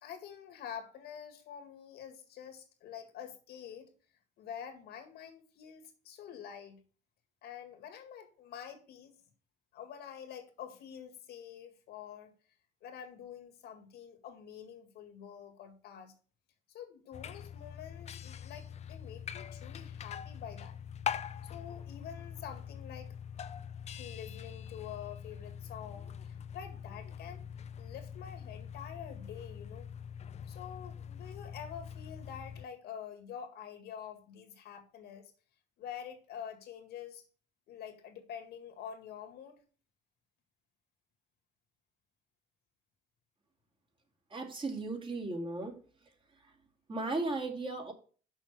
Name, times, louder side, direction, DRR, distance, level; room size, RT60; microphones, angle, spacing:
voice 1, 0.0-3.9 4.4-6.8 7.4-9.1 9.7-12.3 12.8-16.1 16.7-20.8 21.4-23.1 24.0-27.4 27.8-29.9 30.5-35.3 35.8-37.2 37.7-39.6, left 8 dB, 70° left, 1.9 m, -47 dB
sound 1, 17.1-32.6, left 8 dB, 40° left, 0.6 m, -43 dB
voice 2, 44.3-45.7 46.9-47.9, right 2 dB, 30° right, 2.6 m, -36 dB
6.4 x 5.8 x 6.7 m
cardioid pair, 110°, 17 cm